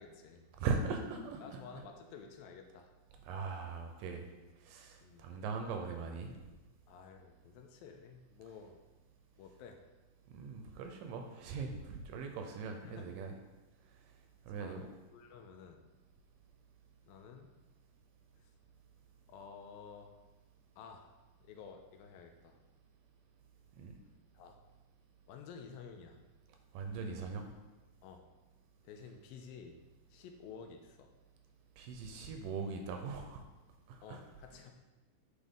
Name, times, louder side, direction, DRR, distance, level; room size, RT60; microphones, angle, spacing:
voice 1, 0.0-0.4 1.4-2.9 5.0-5.3 6.9-8.8 9.4-9.8 12.8-13.1 14.6-14.8 15.1-15.9 17.1-17.5 19.3-20.1 20.8-21.1 21.4-22.6 24.3-24.6 25.3-26.2 28.0-28.3 28.8-29.8 30.1-31.1 34.0-34.7, left 6 dB, 85° left, 4 dB, 2.3 m, -52 dB
voice 2, 0.6-1.6 3.2-4.3 4.6-6.3 10.3-13.3 14.5-14.9 23.8-24.0 26.7-27.5 31.8-33.4 33.9-34.2, right 5 dB, 80° right, 4 dB, 2.2 m, -40 dB
9.0 x 4.1 x 3.6 m, 1.1 s
omnidirectional pair, 4.1 m